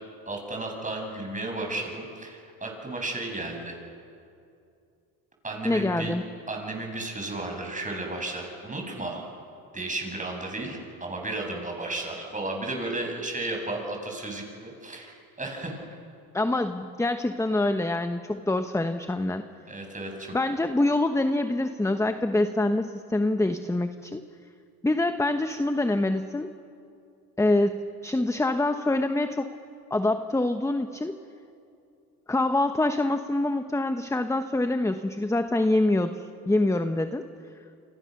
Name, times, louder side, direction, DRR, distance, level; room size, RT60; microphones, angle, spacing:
voice 1, 0.3-3.8 5.4-6.1 6.5-9.2 9.7-15.8 19.7-20.4, right 2 dB, 15° right, 1 dB, 7.7 m, -33 dB
voice 2, 5.6-6.2 16.3-19.5 20.3-24.2 24.8-26.5 27.4-29.5 29.9-31.2 32.3-37.2, left 2 dB, 5° left, 8 dB, 1.1 m, -25 dB
29.0 x 25.0 x 6.7 m, 2.5 s
supercardioid pair, 90°, 45 cm